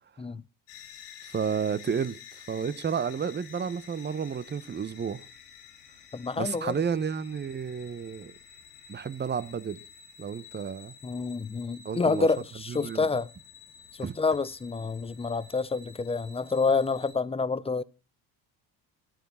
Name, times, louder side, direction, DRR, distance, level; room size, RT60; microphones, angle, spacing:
sound 1, 0.7-17.1, left 7 dB, 90° left, 2.2 m, -51 dB
voice 1, 1.3-2.2 2.5-5.2 6.4-8.3 8.9-9.8 10.2-10.9 11.8-12.3 12.7-13.0 14.0-14.1, right 6 dB, 25° right, 0.9 m, -31 dB
voice 2, 6.1-6.7 11.0-13.3 13.9-17.8, left 4 dB, 15° left, 0.6 m, -28 dB
13.5 x 9.2 x 5.7 m
hypercardioid pair, 65°, 45 cm